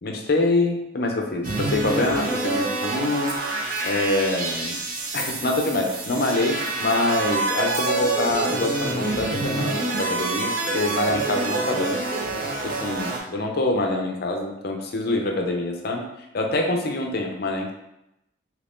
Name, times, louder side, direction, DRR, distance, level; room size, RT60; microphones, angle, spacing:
voice 1, 0.0-3.3 3.8-4.8 5.1-12.0 12.6-16.1 16.3-17.7, left 2 dB, 50° left, 2 dB, 0.5 m, -25 dB
sound 1, 1.4-13.2, right 3 dB, 45° right, 0.5 m, -27 dB
sound 2, 3.3-3.4 3.6-4.4 4.9-6.1 6.5-8.1, left 1 dB, ahead, 0.8 m, -41 dB
2.8 x 2.6 x 3.5 m, 0.86 s
head